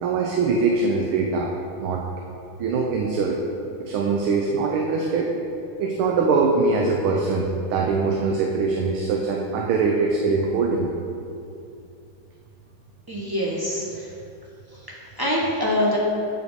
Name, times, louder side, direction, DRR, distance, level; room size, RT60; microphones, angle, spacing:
voice 1, 0.0-1.5 1.8-2.0 2.6-3.4 3.8-5.3 5.8-10.9, right 4 dB, 80° right, 0 dB, 1.6 m, -22 dB
voice 2, 13.1-14.1 14.7-16.0, left 1 dB, 20° right, -5 dB, 0.7 m, -25 dB
7.8 x 5.0 x 6.5 m, 2.6 s
omnidirectional pair, 2.3 m